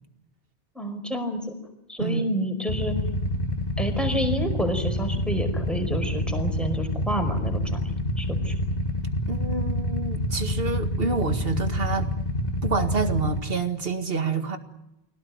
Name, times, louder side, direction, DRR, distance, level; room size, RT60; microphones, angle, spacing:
voice 1, 0.7-1.5 1.9-2.9 3.8-8.5, equal, ahead, 5 dB, 4.9 m, -29 dB
voice 2, 2.0-2.3 9.3-12.1 12.6-14.6, right 4 dB, 60° right, 7 dB, 2.1 m, -28 dB
Motorcycle / Idling, 2.7-13.4, left 1 dB, 40° left, 1.9 m, -27 dB
25.5 x 17.5 x 9.5 m, 0.89 s
omnidirectional pair, 1.1 m